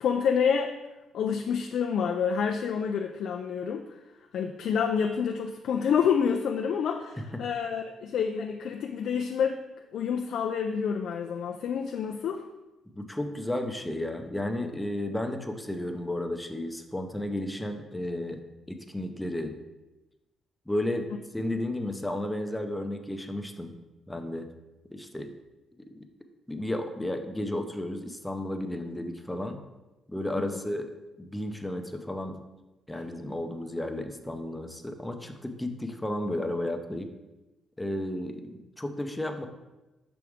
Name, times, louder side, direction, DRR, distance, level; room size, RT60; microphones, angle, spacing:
voice 1, 0.0-0.7 1.1-3.8 4.3-9.6 9.9-12.4 30.4-30.5 32.9-33.0, left 7 dB, 70° left, 3 dB, 0.4 m, -28 dB
voice 2, 12.9-18.4 18.7-19.6 20.7-23.7 24.1-24.5 24.9-25.3 25.8-26.1 26.5-29.6 30.1-30.9 31.2-32.4 32.9-37.1 37.8-39.5, left 1 dB, 10° left, 6 dB, 0.6 m, -33 dB
6.0 x 4.7 x 3.5 m, 1.1 s
cardioid pair, 90°, 0 cm